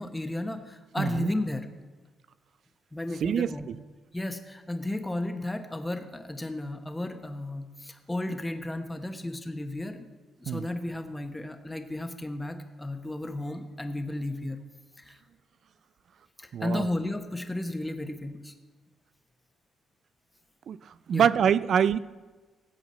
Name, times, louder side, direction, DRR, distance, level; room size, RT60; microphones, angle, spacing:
voice 1, 0.0-1.7 2.9-3.7 4.1-10.0 10.4-14.6 15.0-15.2 16.4-18.5 21.1-21.3, left 1 dB, 10° left, 7 dB, 1.1 m, -33 dB
voice 2, 1.0-1.3 3.2-3.8 10.5-10.7 16.5-16.9 20.7-20.8 21.1-22.0, right 8 dB, 60° right, 18 dB, 0.4 m, -25 dB
18.0 x 7.9 x 4.4 m, 1.3 s
cardioid pair, 90°, 0 cm